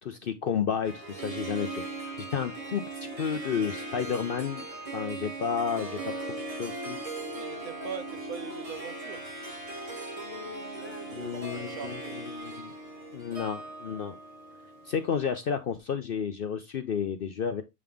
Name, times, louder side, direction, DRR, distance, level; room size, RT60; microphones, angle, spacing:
voice 1, 0.0-2.1 2.3-4.7 4.9-6.1 6.4-7.0 11.1-12.7 13.1-14.2 14.8-17.6, left 7 dB, 65° left, 0.5 m, -32 dB
Harp, 0.8-15.3, right 2 dB, 30° right, 0.7 m, -39 dB
sound 1, 1.3-2.0 2.5-5.4 6.0-9.1 9.6-12.4, equal, 10° left, 0.8 m, -47 dB
voice 2, 7.4-9.4 10.8-12.2, right 7 dB, 75° right, 1.4 m, -42 dB
7.7 x 3.6 x 3.4 m
omnidirectional pair, 1.5 m